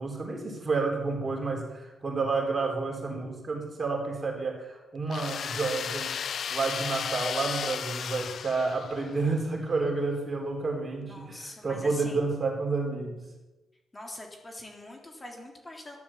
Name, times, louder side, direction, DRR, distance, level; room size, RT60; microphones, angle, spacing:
voice 1, 0.0-6.2 6.5-13.2, right 3 dB, 35° right, 1 dB, 4.0 m, -30 dB
sound 1, 5.1-9.2, left 7 dB, 65° left, 0.4 m, -34 dB
voice 2, 11.0-12.3 13.9-16.0, left 1 dB, 20° left, 1 dB, 3.4 m, -43 dB
13.0 x 11.0 x 7.4 m, 1.1 s
cardioid pair, 80°, 0 cm